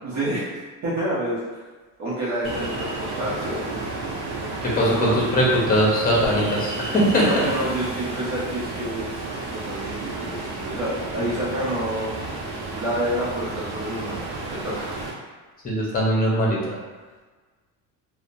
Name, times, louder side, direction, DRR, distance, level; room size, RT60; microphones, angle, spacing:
voice 1, 0.0-0.4 0.8-1.4 2.0-3.8 4.8-5.2 7.1-9.1 9.5-12.1 12.8-15.0, right 1 dB, 45° right, -9 dB, 0.9 m, -28 dB
Ocean, 2.4-15.1, right 2 dB, 80° right, 0.7 m, -32 dB
voice 2, 4.7-7.4 15.6-16.7, equal, 25° left, -4 dB, 0.8 m, -20 dB
2.7 x 2.2 x 2.5 m, 1.3 s
cardioid pair, 125°, 38 cm